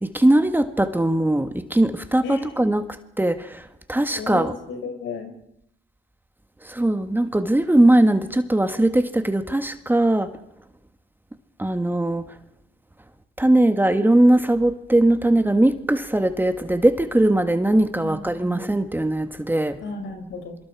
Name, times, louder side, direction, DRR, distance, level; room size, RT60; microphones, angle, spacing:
voice 1, 0.0-2.9 3.2-4.5 6.6-10.3 11.6-12.3 13.4-19.8, right 1 dB, 10° right, 9 dB, 1.6 m, -20 dB
voice 2, 2.2-2.7 4.1-5.3 18.0-18.6 19.8-20.6, left 3 dB, 75° left, 4 dB, 6.4 m, -34 dB
27.0 x 24.5 x 4.8 m, 0.80 s
cardioid pair, 90°, 20 cm